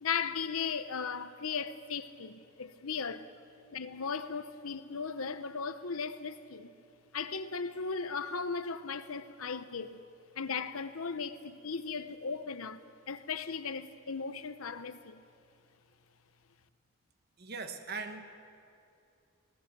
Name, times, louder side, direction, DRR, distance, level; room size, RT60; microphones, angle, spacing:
voice 1, 0.0-3.3 3.7-6.7 7.1-10.0 10.3-15.2, left 5 dB, 90° left, 0.9 m, -37 dB
voice 2, 17.4-18.3, right 4 dB, 50° right, 1.3 m, -40 dB
24.0 x 18.0 x 6.8 m
head